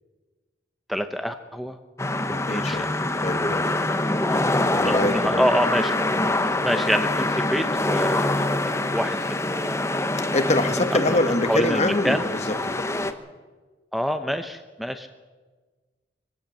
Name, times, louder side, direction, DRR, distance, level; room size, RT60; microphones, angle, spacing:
voice 1, 0.9-1.8 2.5-2.9 4.2-4.5 4.8-5.9 6.6-10.0 10.9-11.2 11.5-12.2 13.9-15.1, equal, ahead, 8 dB, 0.8 m, -27 dB
sound 1, 2.0-13.1, left 2 dB, 15° left, 1.1 m, -25 dB
voice 2, 2.3-2.9 3.2-3.6 4.7-5.4 6.2-6.4 10.2-13.1, left 2 dB, 40° left, 7 dB, 1.6 m, -25 dB
23.0 x 16.0 x 7.5 m, 1.4 s
head